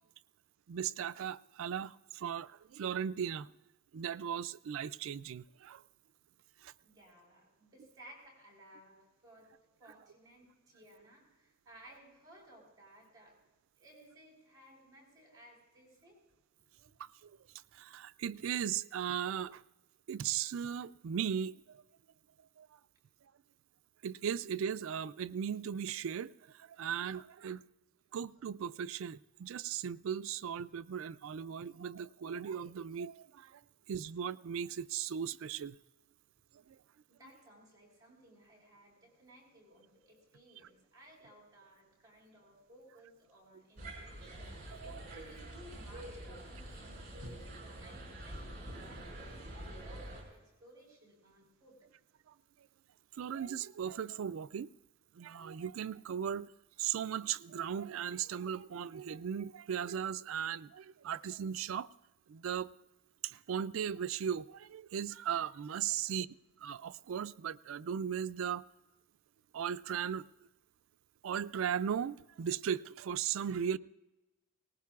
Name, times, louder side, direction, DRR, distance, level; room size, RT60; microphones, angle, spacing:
voice 1, 0.7-3.5 3.9-5.8 6.6-6.7 17.0-17.4 17.7-19.6 20.1-21.8 22.6-22.7 24.0-27.6 28.1-33.6 33.9-35.8 36.7-36.8 44.7-45.1 53.2-54.7 55.2-56.5 56.8-61.9 62.3-62.7 63.2-66.3 66.6-68.6 69.5-70.2 71.2-73.8, right 8 dB, 75° right, 0.3 m, -37 dB
voice 2, 6.8-9.5 9.8-13.4 13.8-16.2 37.1-51.7, right 1 dB, 20° right, 4.2 m, -59 dB
sound 1, 43.8-50.2, right 1 dB, 40° right, 5.3 m, -46 dB
19.5 x 19.0 x 2.4 m
head